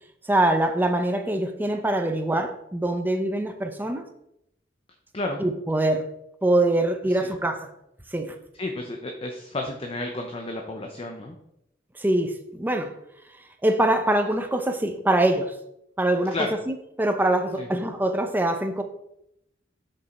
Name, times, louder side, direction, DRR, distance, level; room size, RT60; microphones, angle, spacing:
voice 1, 0.3-4.0 5.4-6.0 6.4-7.7 8.1-8.3 12.0-12.9 13.6-15.5 16.0-16.3 16.7-18.8, right 1 dB, 10° right, 6 dB, 0.6 m, -23 dB
voice 2, 8.5-11.4 16.3-16.5 17.6-17.7, left 2 dB, 30° left, 3 dB, 0.7 m, -32 dB
6.8 x 5.5 x 4.2 m, 0.80 s
head